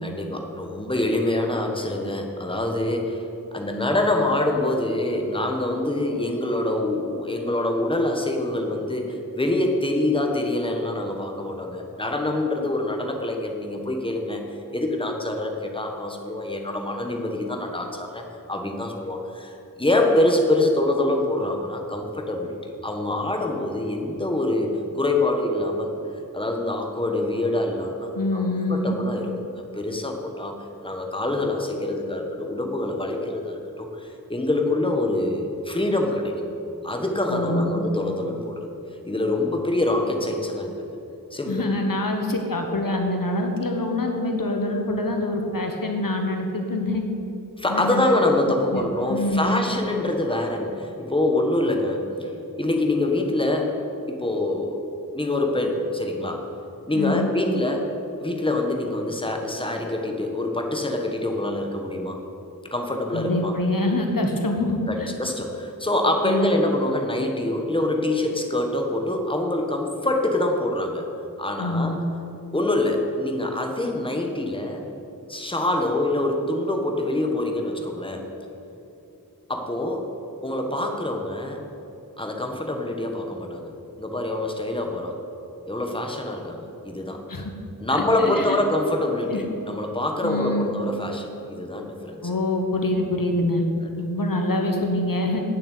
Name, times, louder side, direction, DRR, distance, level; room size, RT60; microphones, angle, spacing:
voice 1, 0.0-14.4 14.7-25.9 26.3-28.4 28.7-36.4 36.8-38.7 39.0-40.8 41.3-41.7 47.6-53.8 54.1-54.8 55.1-56.4 56.9-57.9 58.2-62.2 62.7-63.6 64.9-71.1 71.4-72.0 72.5-74.8 75.3-78.3 79.5-80.1 80.4-81.6 82.2-83.7 84.0-85.2 85.7-87.2 87.8-92.2, left 1 dB, 15° left, 2 dB, 1.4 m, -25 dB
voice 2, 28.1-29.0 37.3-37.8 41.5-47.0 47.7-48.0 48.7-48.8 49.1-49.6 56.9-57.3 63.1-65.1 66.2-66.5 71.6-72.0 87.3-87.5 87.9-88.6 89.3-89.5 90.2-90.7 92.2-93.6 94.0-95.4, left 1 dB, 70° left, 3 dB, 1.3 m, -25 dB
9.0 x 7.5 x 8.5 m, 2.9 s
wide cardioid pair, 65°, 35 cm